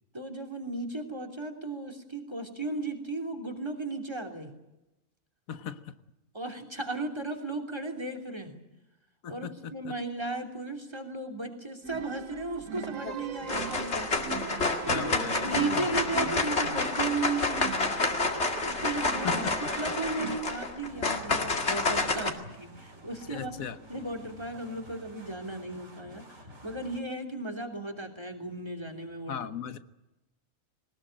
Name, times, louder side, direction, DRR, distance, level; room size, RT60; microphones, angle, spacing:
voice 1, 0.1-4.5 6.3-8.5 9.3-14.1 14.8-15.1 15.4-17.6 17.9-18.0 18.6-19.4 19.8-23.6 23.9-26.3 26.6-29.4, right 2 dB, 20° right, 7 dB, 3.1 m, -35 dB
voice 2, 5.5-5.9 9.2-9.9 14.9-16.0 19.2-19.6 23.3-23.8 29.3-29.8, left 8 dB, 90° left, 11 dB, 1.5 m, -38 dB
sound 1, 11.8-20.4, right 8 dB, 75° right, 1.4 m, -41 dB
sound 2, 12.8-13.1 13.5-22.3, left 3 dB, 55° left, 2.5 m, -29 dB
sound 3, 20.9-27.0, equal, 55° right, 4.5 m, -50 dB
21.0 x 19.5 x 9.0 m, 0.96 s
omnidirectional pair, 1.4 m